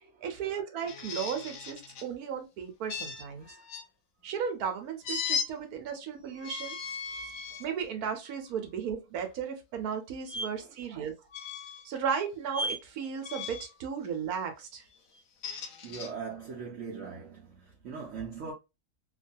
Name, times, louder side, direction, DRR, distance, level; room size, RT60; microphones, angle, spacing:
voice 1, 0.2-3.5 4.2-6.8 7.6-11.1 11.8-14.8, right 7 dB, 80° right, 1.2 m, -35 dB
sound 1, 0.9-2.1 2.9-3.9 5.0-5.5 6.3-7.7 8.3-8.5 10.3-10.5 11.3-11.9 12.5-12.8 13.2-13.7 15.2-16.1, left 4 dB, 70° left, 1.0 m, -36 dB
voice 2, 15.8-18.5, right 5 dB, 60° right, 1.0 m, -41 dB
3.1 x 2.2 x 2.6 m
omnidirectional pair, 1.6 m